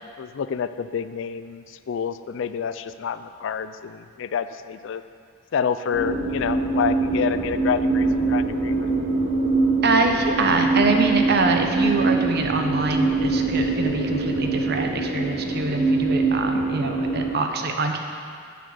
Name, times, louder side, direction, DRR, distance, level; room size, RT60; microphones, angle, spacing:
voice 1, 0.2-5.0 5.5-8.9 16.1-16.2, left 7 dB, 55° left, 12 dB, 0.3 m, -28 dB
sound 1, 5.9-17.3, right 3 dB, 90° right, 1.7 m, -23 dB
voice 2, 9.8-18.0, right 3 dB, 45° right, 4 dB, 0.7 m, -24 dB
9.2 x 4.3 x 7.5 m, 2.2 s
head